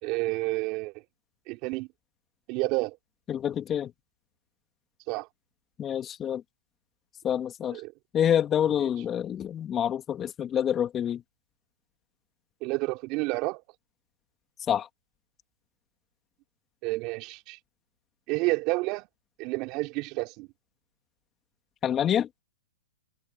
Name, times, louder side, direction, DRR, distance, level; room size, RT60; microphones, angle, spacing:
voice 1, 0.0-0.9 1.5-1.9 2.5-3.0 5.1-5.3 7.7-7.9 8.8-8.9 12.6-13.6 16.8-17.6 18.3-19.1 19.4-20.5, right 24 dB, 40° right, 3.4 m, -30 dB
voice 2, 3.3-3.9 5.8-6.4 7.2-7.8 8.1-11.2 14.7-14.9 21.8-22.3, left 9 dB, 20° left, 2.9 m, -27 dB
hypercardioid pair, 135°, 0 cm